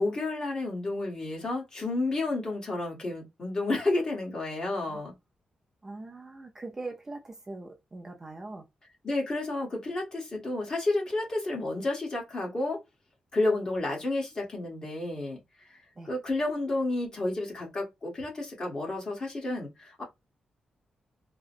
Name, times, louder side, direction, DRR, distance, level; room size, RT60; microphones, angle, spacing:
voice 1, 0.0-5.1 9.0-12.8 13.3-15.4 15.7-15.8 16.0-20.0, left 2 dB, 30° left, 1.4 m, -31 dB
voice 2, 5.8-8.7 16.0-16.1, right 2 dB, 20° right, 0.4 m, -41 dB
3.7 x 2.1 x 2.5 m
wide cardioid pair, 145°, 2 cm